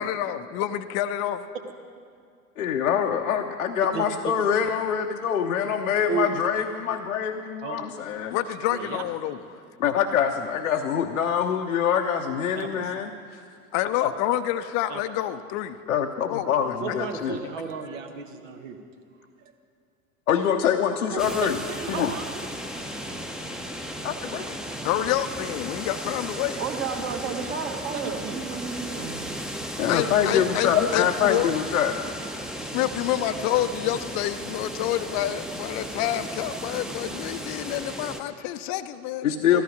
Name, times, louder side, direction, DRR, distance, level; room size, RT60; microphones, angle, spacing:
voice 1, 0.0-1.4 8.3-9.4 13.7-15.8 16.3-16.7 24.8-26.6 29.9-31.5 32.7-39.6, left 12 dB, 40° left, 10 dB, 0.6 m, -28 dB
voice 2, 2.6-8.4 9.8-13.4 14.0-14.1 15.9-17.4 20.3-21.6 21.9-22.1 24.0-24.6 29.8-32.0 39.2-39.6, left 8 dB, 75° left, 2 dB, 0.8 m, -25 dB
voice 3, 8.7-9.0 12.5-12.9 14.9-15.0 16.8-18.8 19.4-19.5 21.4-22.4 28.0-28.5, right 6 dB, 65° right, 6 dB, 1.4 m, -34 dB
sound 1, 21.2-38.2, equal, ahead, 0.8 m, -35 dB
voice 4, 26.6-29.3, right 5 dB, 35° right, 4 dB, 1.6 m, -32 dB
14.0 x 14.0 x 5.1 m, 2.2 s
figure-of-eight pair, 80°, 42 cm